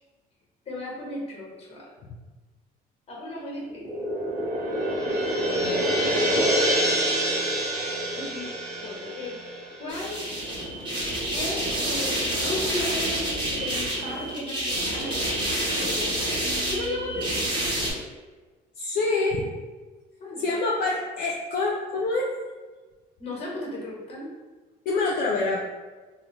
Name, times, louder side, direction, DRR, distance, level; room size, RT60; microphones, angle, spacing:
voice 1, 0.7-1.9 3.1-4.1 8.1-8.5 8.8-9.4 9.8-10.2 11.3-17.5 20.2-20.4 23.2-24.3, left 1 dB, 35° left, -3 dB, 1.2 m, -35 dB
sound 1, 3.7-10.3, equal, 80° right, 0.8 m, -26 dB
voice 2, 5.6-6.1 18.8-19.5 20.4-22.3 24.9-25.6, left 3 dB, 65° left, -2 dB, 0.5 m, -26 dB
sound 2, 9.9-17.9, right 1 dB, 25° right, 1.0 m, -28 dB
3.6 x 2.0 x 3.0 m, 1.3 s
cardioid pair, 110°, 17 cm